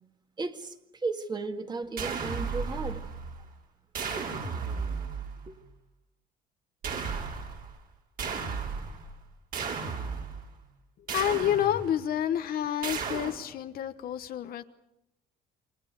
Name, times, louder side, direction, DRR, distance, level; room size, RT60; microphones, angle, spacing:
voice 1, 0.4-3.0 4.2-4.3 5.5-5.6, right 3 dB, 25° right, 2.2 m, -35 dB
sound 1, 2.0-3.5 3.9-5.5 6.8-7.8 8.2-9.1 9.5-10.5 11.1-12.1 12.8-13.3, right 5 dB, 60° right, 6.5 m, -34 dB
voice 2, 11.1-14.6, left 10 dB, 60° left, 1.1 m, -29 dB
29.0 x 24.0 x 6.9 m
cardioid pair, 110°, 17 cm